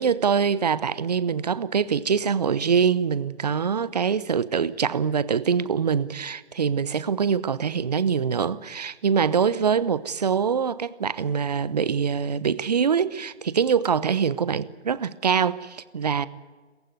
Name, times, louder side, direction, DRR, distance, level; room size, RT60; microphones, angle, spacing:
voice 1, 0.0-16.3, right 6 dB, 35° right, 17 dB, 0.8 m, -24 dB
26.5 x 15.5 x 9.4 m, 1.4 s
figure-of-eight pair, 155°, 34 cm